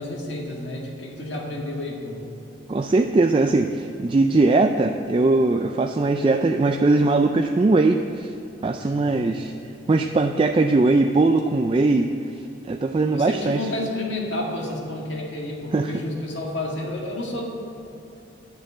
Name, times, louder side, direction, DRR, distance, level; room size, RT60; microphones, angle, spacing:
voice 1, 0.0-2.3 8.8-9.5 13.1-17.4, left 1 dB, 70° left, -1 dB, 2.0 m, -31 dB
voice 2, 2.7-8.3 8.6-9.5 9.9-12.1 12.7-13.6 15.7-15.9, right 3 dB, 25° right, 5 dB, 0.3 m, -20 dB
10.5 x 6.5 x 8.0 m, 2.9 s
head